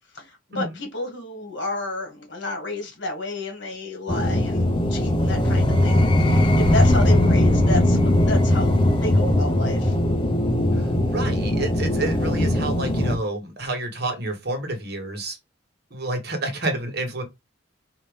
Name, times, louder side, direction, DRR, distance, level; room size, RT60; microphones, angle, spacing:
voice 1, 0.1-9.9, left 2 dB, 60° left, 1.8 m, -31 dB
sound 1, 4.1-13.2, left 1 dB, 25° left, 0.8 m, -20 dB
voice 2, 10.7-15.4 15.9-17.2, right 2 dB, 50° right, 1.3 m, -29 dB
4.9 x 2.8 x 3.5 m
head